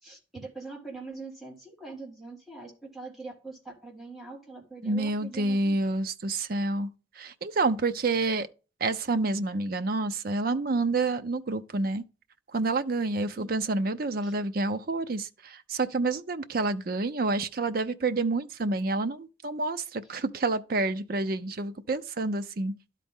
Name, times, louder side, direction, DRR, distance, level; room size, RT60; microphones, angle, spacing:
voice 1, 0.0-5.8 13.4-13.7 14.2-14.3, right 3 dB, ahead, 1.6 m, -43 dB
voice 2, 4.8-6.9 7.2-8.5 8.8-12.0 12.5-22.7, right 3 dB, 50° right, 0.5 m, -28 dB
12.0 x 4.1 x 3.5 m
head